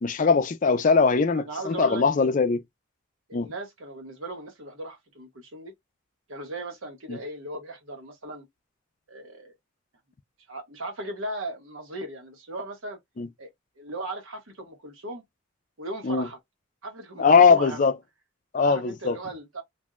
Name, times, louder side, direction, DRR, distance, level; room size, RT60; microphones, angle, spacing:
voice 1, 0.0-2.6 3.3-3.5 7.1-7.2 13.2-13.3 16.0-16.3 17.2-18.0 18.5-19.2, left 5 dB, 40° left, 0.4 m, -21 dB
voice 2, 1.3-2.0 3.3-5.7 6.3-8.5 9.1-9.5 10.5-13.0 13.4-13.5 13.8-15.2 15.8-16.4 16.8-17.8 18.6-19.6, right 1 dB, 85° right, 1.0 m, -37 dB
2.6 x 2.1 x 3.6 m
head